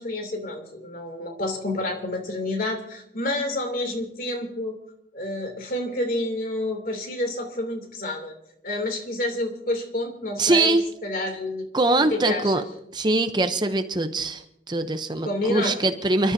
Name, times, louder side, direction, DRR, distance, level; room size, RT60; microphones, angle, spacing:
voice 1, 0.0-4.8 5.1-8.3 8.6-11.7 12.1-12.6 15.2-15.8, left 1 dB, 50° left, 4 dB, 2.8 m, -29 dB
voice 2, 10.4-10.8 11.7-12.6 12.9-16.3, right 2 dB, 25° right, 8 dB, 0.7 m, -22 dB
29.0 x 13.0 x 2.7 m, 0.79 s
head